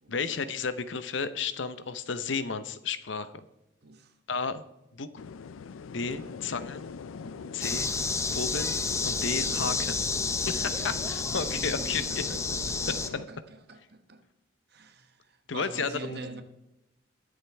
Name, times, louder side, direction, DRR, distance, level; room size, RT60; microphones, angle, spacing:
voice 1, 0.1-3.3 4.3-4.6 4.9-5.1 5.9-6.8 7.5-7.9 8.3-8.7 9.0-10.0 10.5-12.0 15.5-16.2, left 5 dB, 70° left, 0.8 m, -32 dB
voice 2, 3.8-4.2 6.1-6.8 7.2-7.7 9.3-9.6 10.5-14.2 14.7-16.4, right 2 dB, 55° right, 1.1 m, -45 dB
sound 1, 5.2-13.3, left 5 dB, 85° left, 0.4 m, -42 dB
sound 2, 7.6-13.1, left 4 dB, 15° left, 0.6 m, -30 dB
21.0 x 7.4 x 3.4 m
head